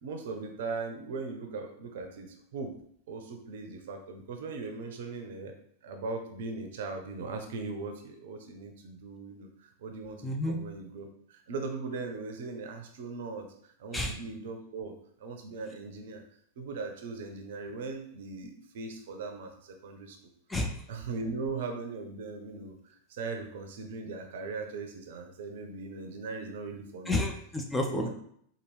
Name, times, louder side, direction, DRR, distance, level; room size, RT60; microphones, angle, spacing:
voice 1, 0.0-2.3 2.5-2.7 3.1-5.5 5.8-9.5 9.8-14.9 15.2-16.2 16.6-20.2 20.9-22.7 23.1-27.2 27.9-28.1, right 4 dB, 55° right, 4 dB, 0.6 m, -39 dB
voice 2, 10.2-10.6 13.9-14.2 20.5-20.8 27.1-28.1, left 1 dB, 10° left, 2 dB, 0.5 m, -30 dB
4.4 x 2.4 x 3.2 m, 0.67 s
figure-of-eight pair, 90°, 0 cm